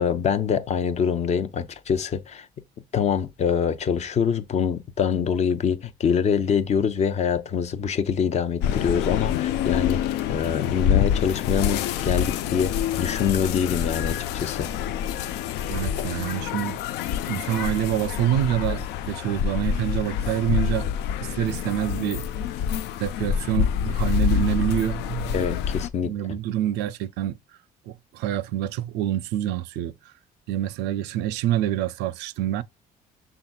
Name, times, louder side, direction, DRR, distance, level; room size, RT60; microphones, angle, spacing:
voice 1, 0.0-2.5 2.9-14.7 25.3-26.4, left 7 dB, 40° left, 0.6 m, -25 dB
sound 1, 8.6-25.9, left 9 dB, 85° left, 0.4 m, -27 dB
voice 2, 15.7-16.8 17.3-20.9 21.2-22.2 23.0-25.4 26.0-27.4 27.9-30.1 30.5-32.6, right 12 dB, 85° right, 0.4 m, -26 dB
5.9 x 3.5 x 2.3 m
cardioid pair, 110°, 17 cm